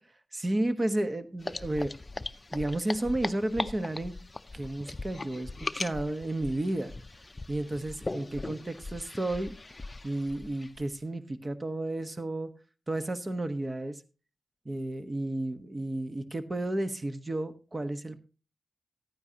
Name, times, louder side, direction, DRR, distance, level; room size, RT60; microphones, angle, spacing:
voice 1, 0.3-1.9 2.5-4.2 4.5-6.9 7.5-9.6 10.0-12.5 12.9-14.0 14.6-18.2, right 1 dB, 35° right, 10 dB, 1.1 m, -32 dB
sound 1, 1.4-10.9, left 2 dB, 30° left, 0.5 m, -39 dB
13.5 x 9.7 x 2.8 m, 0.33 s
cardioid pair, 60°, 0 cm